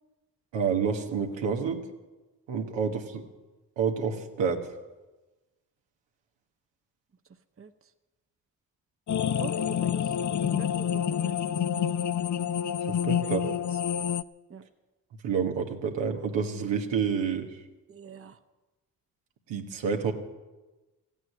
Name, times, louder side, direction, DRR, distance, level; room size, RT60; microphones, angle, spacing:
voice 1, 0.5-1.8 2.5-3.2 3.8-4.7 12.9-13.5 15.2-17.5 19.5-20.1, right 6 dB, 85° right, 2 dB, 1.5 m, -28 dB
sound 1, 9.1-14.2, left 9 dB, 45° left, 0.6 m, -28 dB
voice 2, 9.4-11.8 13.2-13.8 14.5-14.6 17.9-18.4, right 5 dB, 30° right, 9 dB, 1.0 m, -45 dB
14.5 x 9.1 x 9.2 m, 1.1 s
supercardioid pair, 45°, 43 cm